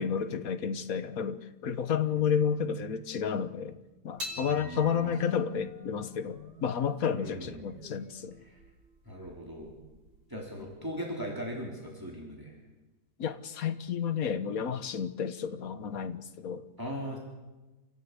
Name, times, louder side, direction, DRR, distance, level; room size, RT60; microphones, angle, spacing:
voice 1, 0.0-3.8 4.0-8.4 13.2-16.6, left 7 dB, 55° left, 12 dB, 1.6 m, -31 dB
sound 1, 4.2-10.7, left 2 dB, 75° right, 4.4 m, -46 dB
voice 2, 4.4-5.1 7.1-7.7 8.4-8.6 9.0-9.7 10.3-12.6 16.8-17.2, equal, 10° right, -2 dB, 4.2 m, -39 dB
28.0 x 16.5 x 8.4 m, 1.1 s
omnidirectional pair, 1.8 m